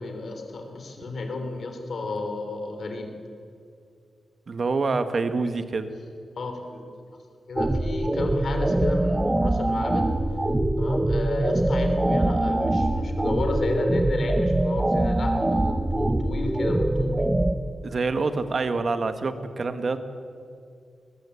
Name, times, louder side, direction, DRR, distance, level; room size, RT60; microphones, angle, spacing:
voice 1, 0.0-3.1 6.3-6.8 7.5-10.1 10.8-17.2, left 3 dB, 50° left, 5 dB, 3.3 m, -32 dB
voice 2, 4.5-5.9 17.8-20.0, right 3 dB, 40° right, 10 dB, 1.4 m, -26 dB
sound 1, 7.6-17.5, right 1 dB, 15° right, 0.8 m, -23 dB
21.5 x 20.0 x 8.3 m, 2.4 s
wide cardioid pair, 180°, 0 cm